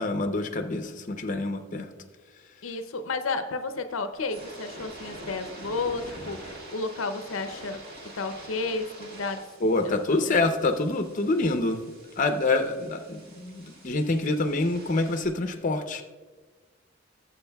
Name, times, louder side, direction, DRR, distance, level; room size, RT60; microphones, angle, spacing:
voice 1, 0.0-1.9 9.6-11.9 12.2-16.0, left 2 dB, 40° left, 7 dB, 0.6 m, -26 dB
voice 2, 2.6-7.8 8.1-9.5 9.8-10.0 10.2-10.4, left 3 dB, 80° left, 9 dB, 0.6 m, -32 dB
sound 1, 4.1-15.3, right 1 dB, 50° right, 1.9 m, -45 dB
17.5 x 7.6 x 2.3 m, 1.4 s
head